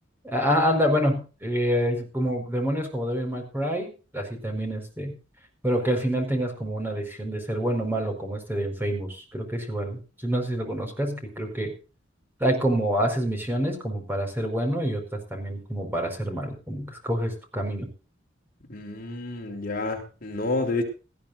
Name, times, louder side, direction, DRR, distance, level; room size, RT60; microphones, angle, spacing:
voice 1, 0.2-5.2 5.6-11.7 12.4-17.9, equal, 10° right, 3 dB, 4.9 m, -27 dB
voice 2, 18.7-20.8, left 2 dB, 45° left, 2 dB, 3.5 m, -29 dB
19.0 x 14.5 x 2.6 m, 0.34 s
head